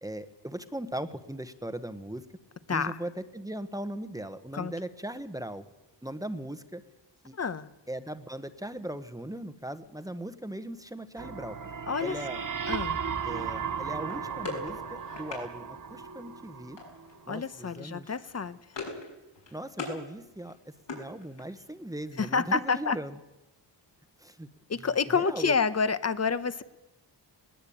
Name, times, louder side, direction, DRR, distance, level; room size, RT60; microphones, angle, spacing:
voice 1, 0.0-2.2 2.7-5.7 6.0-6.8 7.2-7.3 7.9-11.6 12.0-12.4 13.2-16.8 17.3-18.1 19.5-20.6 20.9-23.2 24.2-24.5 24.8-24.9 25.1-25.6, right 1 dB, 10° right, 10 dB, 1.2 m, -38 dB
voice 2, 2.7-3.0 4.5-4.7 7.4-7.7 11.9-12.2 12.7-13.0 17.3-18.6 22.2-23.0 24.7-26.6, left 5 dB, 35° left, 13 dB, 1.0 m, -28 dB
sound 1, 11.2-17.1, right 6 dB, 45° right, 1.3 m, -35 dB
sound 2, 14.1-15.5 16.8-17.2 17.5-17.7 18.0-19.1 19.4-20.0 20.4-21.6, left 3 dB, 75° left, 6.7 m, -40 dB
21.0 x 20.0 x 8.7 m, 0.97 s
wide cardioid pair, 155°, 44 cm